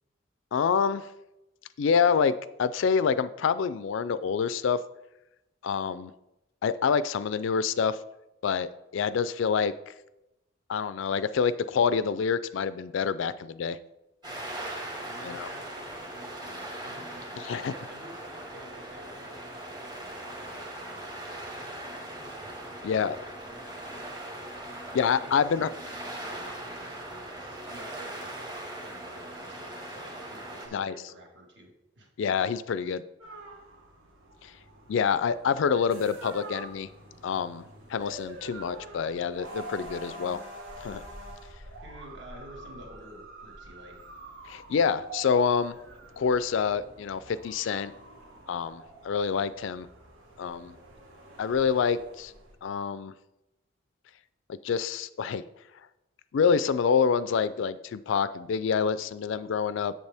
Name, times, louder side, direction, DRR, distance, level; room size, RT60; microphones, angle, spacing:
voice 1, 0.5-1.1 1.8-4.8 5.6-6.1 6.6-8.0 8.4-9.9 10.7-13.8 15.2-15.5 17.5-17.7 22.8-23.2 24.9-25.7 30.7-30.9 32.2-33.0 34.4-34.5 34.9-36.9 37.2-37.6 37.9-40.4 40.8-41.0 44.5-45.8 46.2-47.9 48.5-49.9 50.4-50.8 51.4-52.3 52.6-53.1 54.5-55.4 56.3-59.9, left 6 dB, 65° left, 16 dB, 0.3 m, -27 dB
sound 1, 14.2-30.7, right 1 dB, 20° right, 1.2 m, -40 dB
voice 2, 15.0-22.0 22.6-23.2 24.7-32.1 41.8-44.0, right 1 dB, 55° right, 0 dB, 1.8 m, -51 dB
sound 2, 33.2-52.6, right 1 dB, 85° right, 1.7 m, -46 dB
8.1 x 7.4 x 3.4 m, 0.91 s
head